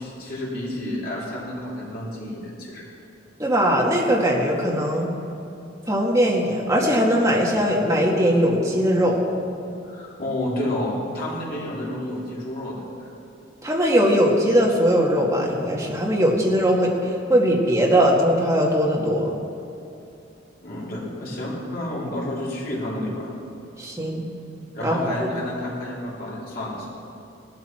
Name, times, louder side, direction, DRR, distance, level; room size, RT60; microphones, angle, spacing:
voice 1, 0.0-2.9 9.8-13.1 20.6-23.3 24.7-26.9, left 1 dB, 55° left, -6 dB, 3.5 m, -30 dB
voice 2, 3.4-5.1 5.9-9.2 13.6-19.3 23.8-24.3 24.8-25.3, equal, 15° right, -3 dB, 2.0 m, -20 dB
17.5 x 12.5 x 4.5 m, 2.7 s
head